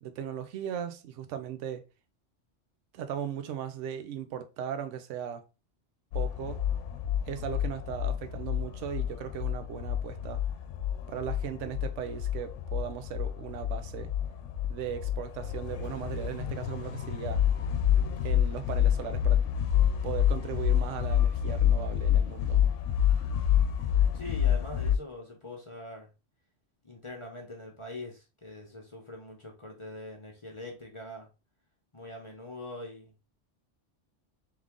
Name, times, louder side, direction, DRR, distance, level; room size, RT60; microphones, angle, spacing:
voice 1, 0.0-1.9 2.9-5.4 6.1-6.6 7.3-10.4 11.1-14.1 14.7-17.4 18.2-19.4 20.0-22.7, right 9 dB, 75° right, 0.9 m, -37 dB
sound 1, 6.1-25.0, left 10 dB, 75° left, 0.9 m, -28 dB
voice 2, 24.1-26.1 26.8-31.3 31.9-33.1, left 1 dB, 30° left, 0.8 m, -43 dB
3.6 x 3.3 x 3.5 m
omnidirectional pair, 1.3 m